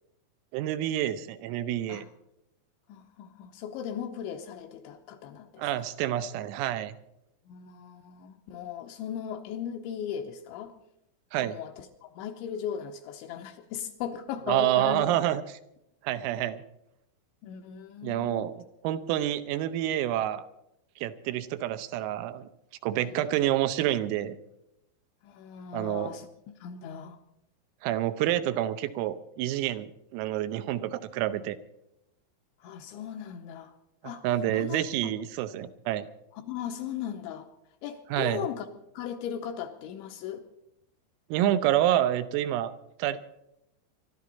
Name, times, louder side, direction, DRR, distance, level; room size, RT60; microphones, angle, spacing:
voice 1, 0.5-2.0 5.6-7.0 11.3-11.6 14.5-15.6 16.0-16.6 18.0-20.5 21.0-22.5 22.8-24.4 25.7-26.2 27.8-31.6 34.2-36.1 38.1-38.5 41.3-42.7 43.0-43.2, right 12 dB, 90° right, 11 dB, 3.5 m, -28 dB
voice 2, 2.9-5.6 7.5-10.7 11.4-15.1 17.4-18.5 23.0-23.1 25.2-27.2 32.6-33.7 34.0-34.2 34.5-35.1 36.3-37.5 37.8-38.7 38.9-40.4, left 9 dB, 75° left, 5 dB, 2.9 m, -38 dB
25.5 x 12.5 x 4.1 m, 0.82 s
omnidirectional pair, 5.9 m